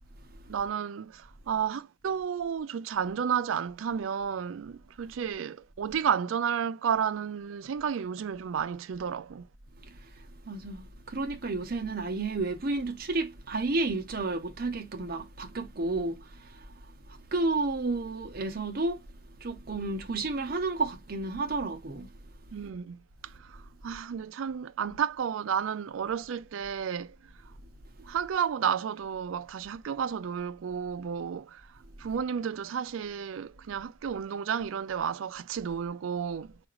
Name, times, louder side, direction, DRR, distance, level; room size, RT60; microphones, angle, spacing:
voice 1, 0.5-9.4 22.5-23.0 23.5-23.6 23.8-27.1 28.0-31.6 32.0-36.5, right 7 dB, 85° right, 0.4 m, -32 dB
voice 2, 9.8-16.7 17.1-19.1 19.4-22.1 24.8-24.9, right 3 dB, 50° right, 0.7 m, -32 dB
4.9 x 2.4 x 2.9 m
head